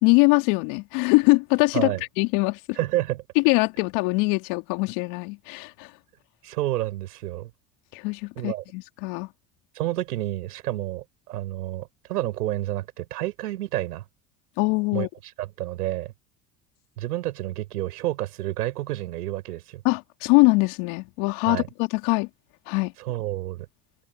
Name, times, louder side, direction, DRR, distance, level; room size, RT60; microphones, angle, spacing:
voice 1, 0.0-2.8 3.4-5.9 7.9-9.3 14.6-15.1 19.8-22.3 22.7-22.9, left 28 dB, 70° left, 2.9 m, -22 dB
voice 2, 2.8-3.2 6.4-7.5 8.4-8.6 9.7-14.0 14.9-15.1 15.4-16.1 17.0-19.8 21.5-21.7 23.0-23.7, right 15 dB, 85° right, 7.0 m, -29 dB
hypercardioid pair, 70°, 46 cm